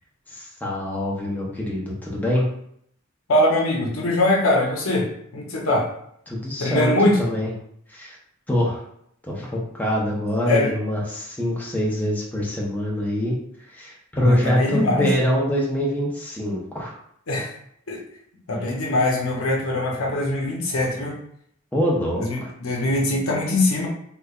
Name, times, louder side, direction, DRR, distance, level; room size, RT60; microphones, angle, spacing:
voice 1, 0.3-2.5 6.3-6.9 7.2-7.5 7.9-8.2 8.5-8.8 9.3-13.4 13.8-16.9 21.7-22.5, equal, 10° left, -4 dB, 0.7 m, -24 dB
voice 2, 3.3-5.9 6.6-7.2 10.5-10.7 14.1-15.1 17.3-17.5 17.9-18.0 18.5-21.2 22.2-23.9, left 1 dB, 80° left, -1 dB, 0.8 m, -22 dB
3.5 x 3.2 x 2.4 m, 0.69 s
head